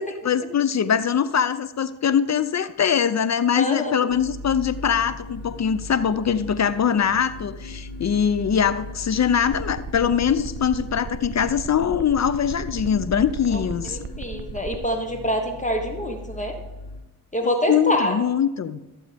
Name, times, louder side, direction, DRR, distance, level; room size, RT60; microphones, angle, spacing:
voice 1, 0.2-14.0 17.7-18.8, left 8 dB, 45° left, 15 dB, 0.6 m, -22 dB
voice 2, 3.6-3.9 13.5-16.5 17.3-18.2, left 1 dB, 20° left, 3 dB, 1.4 m, -26 dB
sound 1, 4.1-17.0, left 2 dB, 80° left, 2.6 m, -38 dB
sound 2, 9.4-14.9, right 6 dB, 30° right, 0.5 m, -36 dB
14.0 x 7.7 x 3.5 m, 1.1 s
cardioid pair, 70°, 40 cm